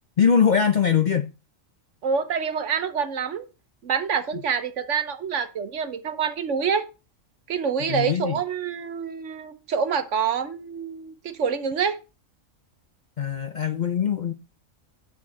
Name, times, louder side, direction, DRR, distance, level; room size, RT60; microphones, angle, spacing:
voice 1, 0.2-1.3 7.9-8.4 13.2-14.3, left 7 dB, 50° left, 0.5 m, -22 dB
voice 2, 2.0-3.5 3.8-6.9 7.5-12.0, right 6 dB, 70° right, 1.3 m, -26 dB
8.7 x 6.2 x 4.2 m
omnidirectional pair, 1.4 m